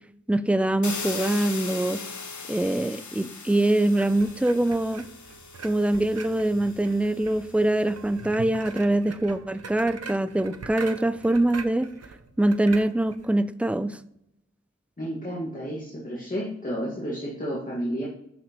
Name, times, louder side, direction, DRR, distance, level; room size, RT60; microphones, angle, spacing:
voice 1, 0.3-2.0 2.5-5.0 5.6-11.9 12.4-14.0, right 1 dB, 5° right, 13 dB, 0.4 m, -24 dB
sound 1, 0.8-7.7, left 4 dB, 80° left, 0.9 m, -39 dB
sound 2, 3.9-13.3, right 5 dB, 60° right, 0.7 m, -43 dB
voice 2, 15.0-18.1, equal, 30° left, -5 dB, 1.8 m, -31 dB
6.5 x 6.3 x 3.0 m, 0.76 s
wide cardioid pair, 50°, 29 cm